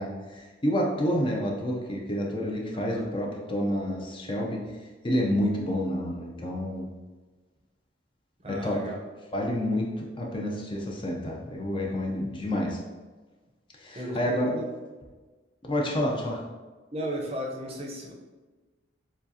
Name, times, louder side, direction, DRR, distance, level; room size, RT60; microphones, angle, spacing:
voice 1, 0.0-4.6 5.0-6.9 8.5-8.8 9.3-12.8 13.8-14.5 15.7-16.4, equal, 25° left, -1 dB, 0.5 m, -29 dB
voice 2, 2.7-3.1 8.4-8.9 13.9-14.6 16.9-18.1, equal, 30° right, -1 dB, 0.7 m, -35 dB
7.1 x 2.4 x 2.7 m, 1.3 s
head